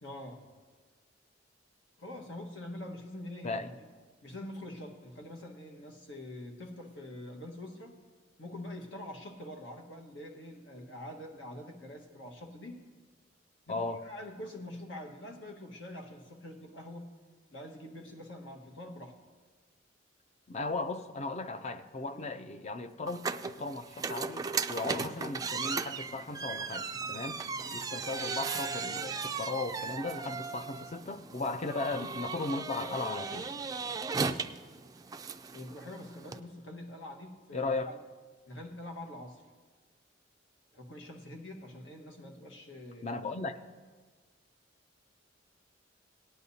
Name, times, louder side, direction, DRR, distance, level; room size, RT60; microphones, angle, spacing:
voice 1, 0.0-0.4 2.0-3.8 4.2-7.9 8.4-12.8 13.7-17.1 17.5-19.1 22.1-22.3 35.5-38.0 38.5-39.4 40.7-43.1, left 1 dB, 80° left, 2 dB, 1.5 m, -45 dB
voice 2, 13.7-14.0 20.5-27.4 27.7-33.4 37.5-37.9 43.0-43.5, left 3 dB, 35° left, 9 dB, 0.5 m, -36 dB
sound 1, 23.1-36.4, right 5 dB, 20° right, 0.3 m, -37 dB
18.0 x 10.5 x 2.8 m, 1.5 s
head